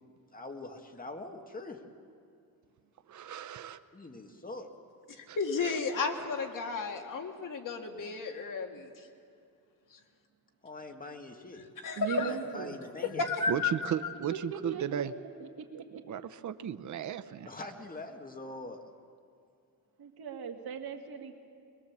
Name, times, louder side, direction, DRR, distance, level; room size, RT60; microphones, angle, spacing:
voice 1, 0.3-1.8 3.9-4.7 10.6-11.7 12.2-13.3 17.5-18.8, left 2 dB, 20° left, 4 dB, 1.9 m, -43 dB
voice 2, 3.1-3.8 5.3-5.4 6.1-6.3 13.5-15.1 16.1-17.5, right 9 dB, 50° right, 10 dB, 0.8 m, -35 dB
voice 3, 5.2-9.1 11.8-12.3 13.0-13.7 14.0-14.1, left 4 dB, 55° left, 3 dB, 2.2 m, -33 dB
voice 4, 12.0-12.8 14.3-15.1 15.4-15.8 20.0-21.3, right 7 dB, 75° right, 2 dB, 2.3 m, -39 dB
22.5 x 22.0 x 7.4 m, 2.4 s
cardioid pair, 120°, 38 cm